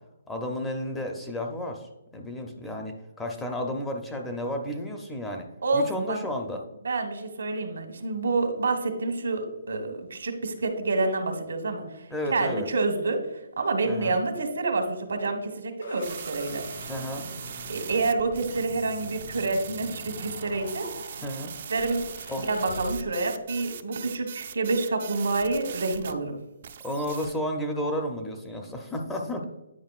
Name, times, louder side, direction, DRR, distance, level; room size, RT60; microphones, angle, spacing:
voice 1, 0.3-5.5 5.7-6.6 12.1-12.7 13.9-14.1 16.9-17.3 21.2-21.5 22.3-22.5 26.8-29.4, equal, 5° left, 2 dB, 0.5 m, -32 dB
voice 2, 5.6-6.2 6.8-13.2 13.6-16.7 17.7-21.2 21.7-22.0 22.4-26.4, right 3 dB, 80° right, 5 dB, 1.2 m, -28 dB
sound 1, 15.8-23.4, left 2 dB, 85° left, 2.0 m, -44 dB
sound 2, 16.0-26.1 26.6-27.4, right 8 dB, 45° right, 0.4 m, -40 dB
9.4 x 5.0 x 2.4 m, 0.93 s
hypercardioid pair, 165°, 0 cm